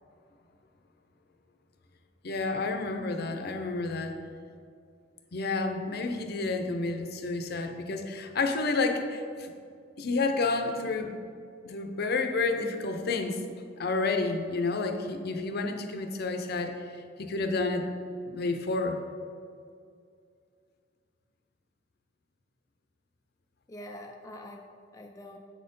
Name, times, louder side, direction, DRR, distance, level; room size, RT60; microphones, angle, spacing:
voice 1, 2.2-4.1 5.3-9.5 10.0-11.2 11.6-13.4 13.8-17.9 18.2-19.0, left 3 dB, 55° left, 5 dB, 0.6 m, -30 dB
voice 2, 23.7-25.4, left 1 dB, 15° left, 2 dB, 0.3 m, -45 dB
7.2 x 4.3 x 5.3 m, 2.3 s
head